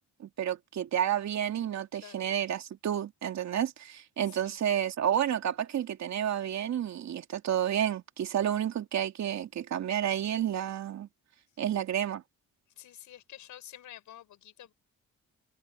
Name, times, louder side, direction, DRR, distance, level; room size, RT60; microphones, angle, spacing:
voice 1, 0.2-11.1 11.6-12.2, right 10 dB, 65° right, 2.8 m, -30 dB
voice 2, 1.9-2.3 4.3-4.6 12.8-14.7, left 11 dB, 75° left, 6.5 m, -49 dB
cardioid pair, 90°, 30 cm